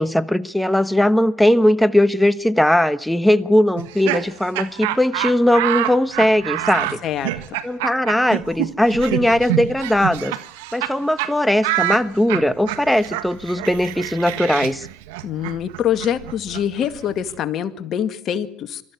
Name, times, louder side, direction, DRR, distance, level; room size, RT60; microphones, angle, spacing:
voice 1, 0.0-7.0 7.6-10.3 10.7-14.9, left 1 dB, 5° left, 1.2 m, -19 dB
Laughter, 3.7-10.9 11.2-11.3 11.6-17.3, right 14 dB, 85° right, 1.5 m, -27 dB
voice 2, 7.0-7.6 15.2-18.8, left 9 dB, 50° left, 2.0 m, -25 dB
24.0 x 14.0 x 9.7 m
supercardioid pair, 90°, 0 cm